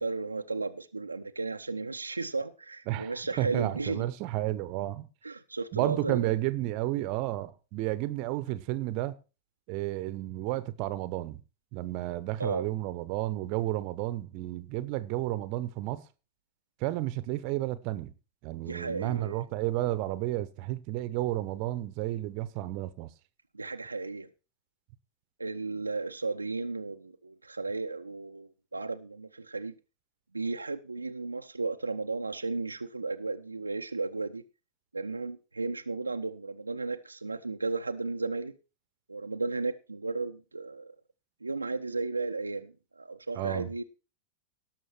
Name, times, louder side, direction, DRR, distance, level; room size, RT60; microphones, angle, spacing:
voice 1, 0.0-4.0 5.2-6.3 12.4-12.6 18.7-19.4 23.5-24.3 25.4-29.7 30.3-34.4 34.9-38.5 39.1-40.9 41.4-43.8, right 3 dB, 80° right, 0.6 m, -34 dB
voice 2, 2.9-5.1 5.7-9.2 9.7-11.4 11.7-16.0 16.8-18.1 18.4-23.1 43.3-43.7, right 15 dB, 45° right, 0.9 m, -32 dB
18.0 x 6.4 x 4.5 m
figure-of-eight pair, 90°, 0 cm